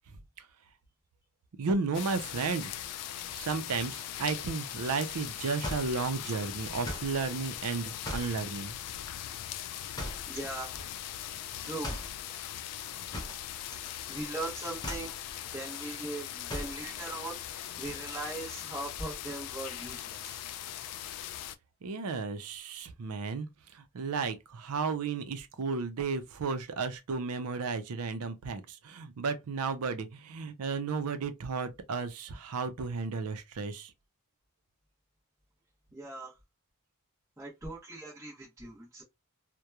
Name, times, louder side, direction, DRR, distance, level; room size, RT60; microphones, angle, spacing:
voice 1, 1.6-2.7 3.3-8.7 21.8-23.5 23.7-33.9, right 4 dB, 80° right, 0.5 m, -33 dB
sound 1, 1.9-21.6, left 11 dB, 90° left, 0.3 m, -40 dB
sound 2, 5.6-7.2 8.0-8.4 9.9-10.4 11.8-12.2 13.1-13.9 14.2-14.4 14.8-15.2 16.5-16.9, equal, 15° left, 0.6 m, -39 dB
voice 2, 10.3-10.8 11.6-11.9 14.1-15.2 15.5-17.4 17.8-20.4 35.9-36.3 37.4-39.0, right 2 dB, 15° right, 0.9 m, -39 dB
2.9 x 2.2 x 2.2 m
head